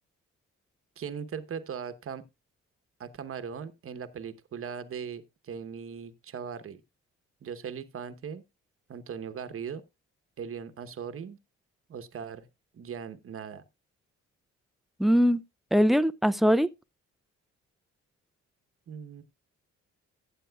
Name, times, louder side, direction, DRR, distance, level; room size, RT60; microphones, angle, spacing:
voice 1, 1.0-2.2 3.0-6.8 7.4-8.4 8.9-9.8 10.4-11.4 11.9-12.5 12.7-13.6 18.9-19.2, right 7 dB, 45° right, 1.0 m, -39 dB
voice 2, 15.0-15.4 15.7-16.7, equal, ahead, 0.4 m, -21 dB
15.0 x 8.5 x 2.3 m
cardioid pair, 90°, 30 cm